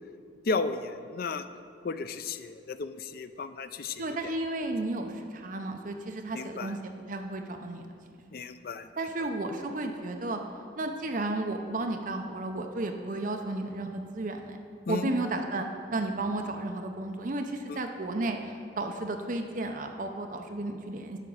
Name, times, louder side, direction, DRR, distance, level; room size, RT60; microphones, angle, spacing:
voice 1, 0.5-1.5 1.8-4.2 6.3-6.7 8.3-8.9 14.9-15.1 17.7-17.8, left 4 dB, 50° left, 11 dB, 0.4 m, -34 dB
voice 2, 4.0-6.8 7.1-7.9 9.0-10.4 10.8-14.6 14.9-15.7 15.9-21.2, right 2 dB, 40° right, 5 dB, 0.6 m, -33 dB
11.0 x 4.9 x 7.1 m, 2.4 s
head